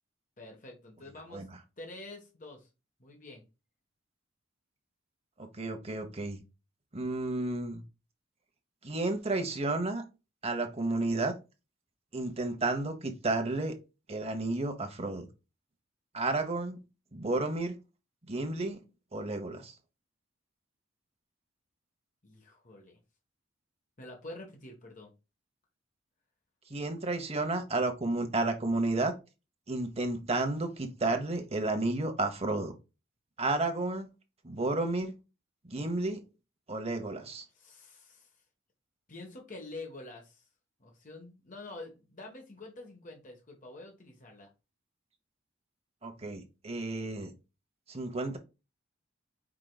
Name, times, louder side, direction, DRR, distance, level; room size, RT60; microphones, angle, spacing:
voice 1, 0.4-1.5 1.8-2.7 3.0-3.4 22.2-23.0 24.0-25.1 37.5-38.3 39.1-40.5 40.8-44.5, left 2 dB, 40° left, 1.2 m, -47 dB
voice 2, 5.4-6.4 6.9-7.8 8.8-10.0 10.4-11.3 12.1-13.8 14.1-15.3 16.1-16.8 17.1-17.7 18.3-18.8 19.1-19.7 26.7-29.1 29.7-32.7 33.4-34.1 34.4-35.1 35.7-36.2 36.7-37.4 46.0-47.3 47.9-48.4, right 2 dB, 30° right, 1.0 m, -32 dB
4.9 x 4.5 x 2.3 m
head